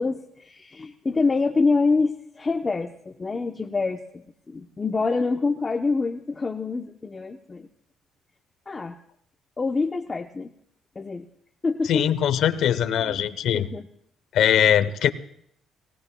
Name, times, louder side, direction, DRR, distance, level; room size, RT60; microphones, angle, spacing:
voice 1, 0.0-7.7 8.7-9.0 9.6-10.5 10.9-11.2 11.6-12.1 12.9-13.2 13.5-13.9, left 4 dB, 25° left, 4 dB, 0.8 m, -26 dB
voice 2, 11.9-13.7 14.3-15.1, left 10 dB, 75° left, 12 dB, 0.9 m, -21 dB
28.5 x 17.5 x 2.3 m, 0.70 s
cardioid pair, 95°, 0 cm